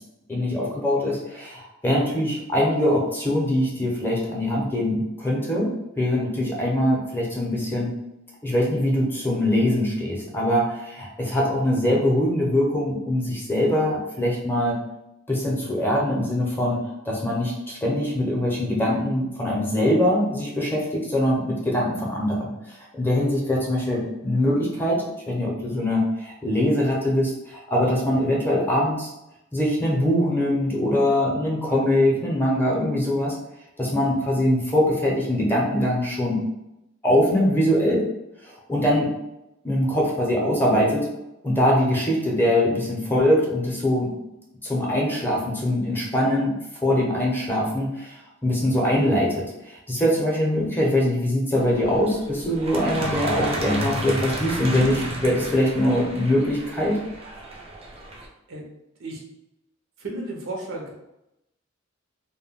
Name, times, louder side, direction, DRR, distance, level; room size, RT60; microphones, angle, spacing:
voice 1, 0.3-5.7 6.0-7.9 8.4-14.8 15.3-16.8 17.0-29.1 29.5-33.3 33.8-36.4 37.0-38.0 38.4-39.1 39.6-41.1 41.4-44.1 44.6-46.5 46.8-57.0, left 1 dB, 10° left, -4 dB, 0.6 m, -23 dB
sound 1, 51.6-58.3, right 1 dB, 30° right, 0.4 m, -32 dB
voice 2, 60.0-60.9, right 2 dB, 80° right, -1 dB, 0.7 m, -33 dB
2.2 x 2.1 x 3.5 m, 0.89 s
head